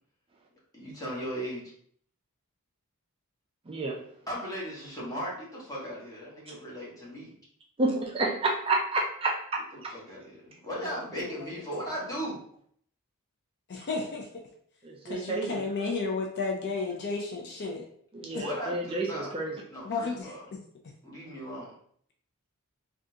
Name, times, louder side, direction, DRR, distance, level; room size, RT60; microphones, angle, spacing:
voice 1, 0.7-1.6 4.3-7.3 9.7-12.4 18.3-19.3 19.7-20.4 21.0-21.7, equal, 15° left, -6 dB, 1.2 m, -37 dB
voice 2, 3.7-4.0 7.8-9.9 14.8-15.6 18.1-19.6, right 2 dB, 25° right, -1 dB, 0.4 m, -30 dB
voice 3, 13.7-14.3 15.0-17.9 18.3-18.4 19.8-20.6, left 4 dB, 50° left, 1 dB, 0.5 m, -32 dB
3.7 x 2.4 x 2.7 m, 0.62 s
head